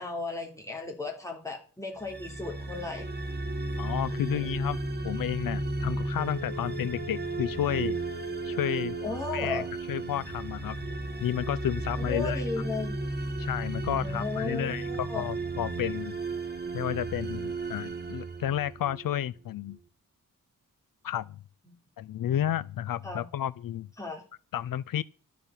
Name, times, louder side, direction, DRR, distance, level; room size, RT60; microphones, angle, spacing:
voice 1, 0.0-3.1 4.0-4.5 9.0-9.7 12.0-13.0 13.9-15.2 21.6-21.8 23.0-23.3 24.0-24.2, left 3 dB, 10° left, 3.4 m, -35 dB
sound 1, 2.0-19.1, right 2 dB, 30° right, 1.4 m, -34 dB
voice 2, 3.8-4.8 5.0-8.0 8.4-9.0 9.3-9.6 9.9-10.8 11.2-12.4 13.4-16.2 16.7-19.8 21.0-21.4 22.0-23.9 24.5-25.0, left 11 dB, 80° left, 0.5 m, -31 dB
Telephone, 6.2-9.2 9.6-9.7, left 1 dB, 40° left, 2.1 m, -41 dB
12.5 x 10.5 x 5.8 m
wide cardioid pair, 155°, 34 cm